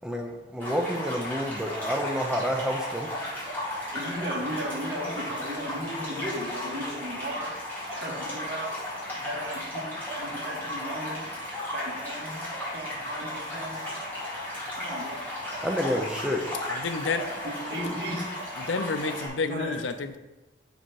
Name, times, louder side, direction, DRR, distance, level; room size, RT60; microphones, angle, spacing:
voice 1, 0.0-3.1 15.6-16.4, equal, 5° right, 2 dB, 0.5 m, -29 dB
sound 1, 0.6-19.3, left 1 dB, 10° left, 2.2 m, -35 dB
voice 2, 3.9-11.2 11.7-12.5 12.7-13.8 14.8-15.3 17.4-18.3 19.5-19.8, equal, 70° right, -3 dB, 1.9 m, -36 dB
voice 3, 16.7-17.3 18.6-20.2, left 4 dB, 85° left, 9 dB, 0.5 m, -30 dB
6.6 x 4.2 x 4.7 m, 1.1 s
head